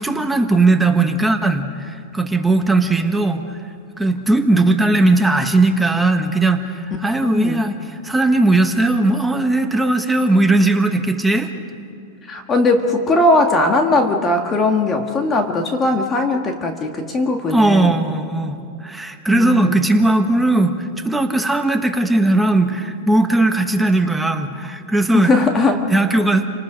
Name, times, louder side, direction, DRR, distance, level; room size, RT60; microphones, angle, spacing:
voice 1, 0.0-3.6 4.0-11.5 17.5-25.3 25.9-26.5, right 2 dB, 5° right, 5 dB, 1.3 m, -18 dB
voice 2, 7.2-7.6 12.3-18.0 19.3-19.8 25.1-25.9, left 2 dB, 20° left, 4 dB, 1.8 m, -18 dB
29.0 x 19.0 x 5.1 m, 2.4 s
hypercardioid pair, 130°, 0 cm